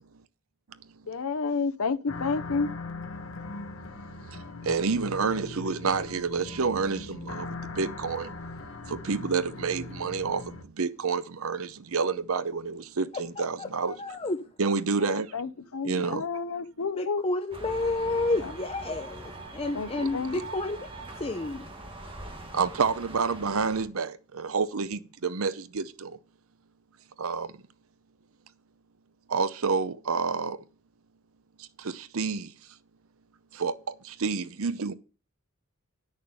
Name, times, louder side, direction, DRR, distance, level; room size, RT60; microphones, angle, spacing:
voice 1, 1.1-2.7 15.0-17.2 18.4-18.5 19.7-20.3, left 4 dB, 80° left, 0.7 m, -30 dB
Midnight Wolff Bell, 2.1-10.6, left 3 dB, 60° left, 1.3 m, -40 dB
voice 2, 4.3-8.3 8.9-14.2 14.6-15.5 15.8-16.4 20.0-20.4 22.5-26.2 27.2-27.6 29.3-30.6 31.6-32.5 33.5-34.9, right 5 dB, 75° right, 0.7 m, -29 dB
voice 3, 13.6-14.4 17.0-19.1 19.5-20.9 21.2-21.7, left 2 dB, 25° left, 0.6 m, -30 dB
sound 1, 17.5-23.8, right 2 dB, 25° right, 1.9 m, -42 dB
10.5 x 6.5 x 5.5 m
head